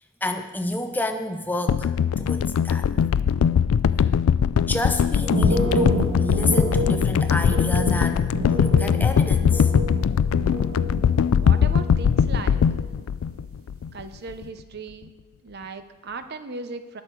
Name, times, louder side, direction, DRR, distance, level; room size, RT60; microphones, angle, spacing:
voice 1, 0.2-2.9 4.0-4.1 4.6-9.7, left 1 dB, 10° left, 7 dB, 0.5 m, -30 dB
sound 1, 1.7-14.0 14.3-14.4, left 7 dB, 85° left, 0.3 m, -21 dB
sound 2, 5.2-11.0 11.3-12.0 12.3-12.8, right 1 dB, 85° right, 1.5 m, -29 dB
voice 2, 11.4-12.6 13.9-15.1 15.4-17.0, right 3 dB, 50° right, 10 dB, 0.7 m, -37 dB
19.0 x 6.4 x 4.7 m, 1.2 s
head